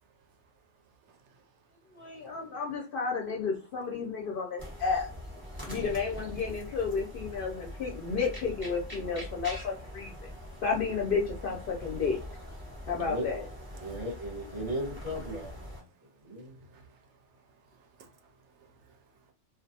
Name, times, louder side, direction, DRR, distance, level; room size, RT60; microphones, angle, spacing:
voice 1, 1.1-1.5 2.0-2.6 13.7-14.0 15.1-15.4 16.4-19.3, right 3 dB, 70° right, 0.8 m, -58 dB
voice 2, 1.9-5.1 5.7-10.1 10.6-12.2 12.9-13.5, left 5 dB, 60° left, 0.6 m, -32 dB
sound 1, 4.6-15.8, left 1 dB, 10° right, 0.9 m, -43 dB
voice 3, 12.9-13.4 13.8-15.9 16.2-16.6, right 1 dB, 35° right, 0.8 m, -37 dB
2.4 x 2.2 x 2.7 m
omnidirectional pair, 1.3 m